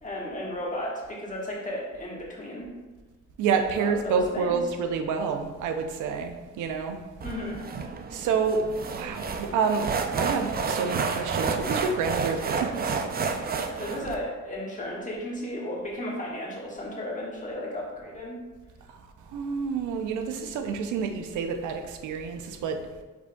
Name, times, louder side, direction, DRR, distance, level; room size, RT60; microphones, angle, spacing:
voice 1, 0.0-2.7 3.8-4.6 7.2-7.6 13.8-18.4, left 1 dB, 25° left, -4 dB, 1.5 m, -34 dB
voice 2, 3.4-7.0 8.1-8.6 8.9-13.0 18.9-19.0 19.3-22.8, right 5 dB, 80° right, 6 dB, 0.6 m, -28 dB
sound 1, 7.2-14.2, right 5 dB, 30° right, 0.5 m, -30 dB
5.4 x 4.3 x 2.3 m, 1.3 s
cardioid pair, 90°, 30 cm